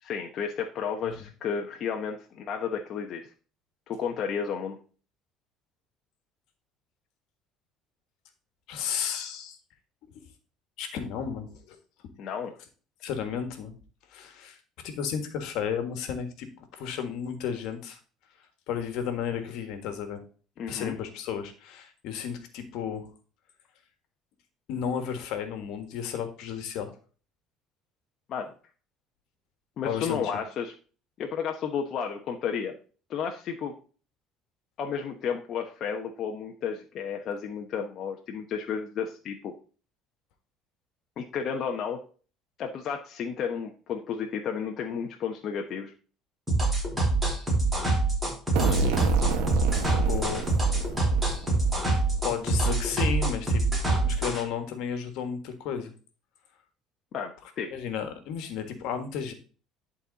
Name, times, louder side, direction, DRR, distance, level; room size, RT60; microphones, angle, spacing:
voice 1, 0.0-3.3 3.9-4.8 12.2-12.5 20.6-20.9 28.3-28.5 29.8-30.7 31.2-32.8 33.1-33.7 34.8-39.5 41.2-42.0 42.6-45.9 57.1-57.7, left 7 dB, 50° left, 2 dB, 0.9 m, -32 dB
voice 2, 8.7-9.6 10.8-11.8 13.0-13.7 14.1-14.6 14.8-16.5 16.7-18.0 18.7-20.2 20.7-23.1 24.7-26.9 29.8-30.2 48.6-49.0 50.0-50.5 52.2-53.6 54.0-55.9 57.7-59.3, left 7 dB, 75° left, 7 dB, 1.6 m, -33 dB
sound 1, 46.5-54.4, right 2 dB, 10° right, 4.5 m, -25 dB
sound 2, 48.6-52.2, right 5 dB, 85° right, 1.2 m, -29 dB
11.0 x 4.2 x 4.0 m, 0.38 s
cardioid pair, 115°, 0 cm